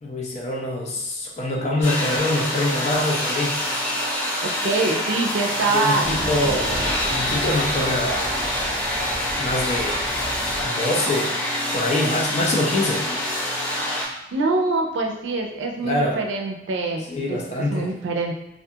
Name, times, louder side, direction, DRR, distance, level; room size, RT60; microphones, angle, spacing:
voice 1, 0.0-3.5 5.7-6.8 7.1-8.3 9.4-10.0 10.6-11.3 11.7-13.1 15.8-16.2 17.1-17.9, left 1 dB, 35° left, -2 dB, 0.5 m, -24 dB
sound 1, 1.8-14.1, left 1 dB, 90° left, 0.9 m, -26 dB
voice 2, 4.4-6.1 14.3-18.3, right 3 dB, 90° right, 2 dB, 0.4 m, -25 dB
Thunder, 6.0-10.6, right 1 dB, 30° right, 0.6 m, -34 dB
2.4 x 2.3 x 2.7 m, 0.92 s
head